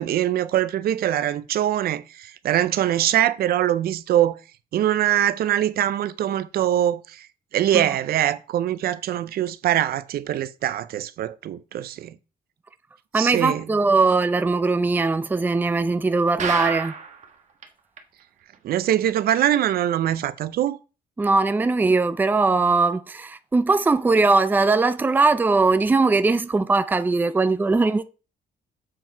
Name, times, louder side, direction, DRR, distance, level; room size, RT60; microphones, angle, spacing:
voice 1, 0.0-4.4 4.7-7.3 7.5-12.1 13.1-13.7 18.6-20.8, right 11 dB, 70° right, 0.6 m, -23 dB
voice 2, 13.1-16.9 21.2-28.0, right 3 dB, 10° right, 0.4 m, -20 dB
sound 1, 16.4-17.2 17.6-17.7 18.0-18.1 18.5-18.6, right 6 dB, 45° right, 1.2 m, -28 dB
7.6 x 4.6 x 4.5 m
cardioid pair, 135°, 16 cm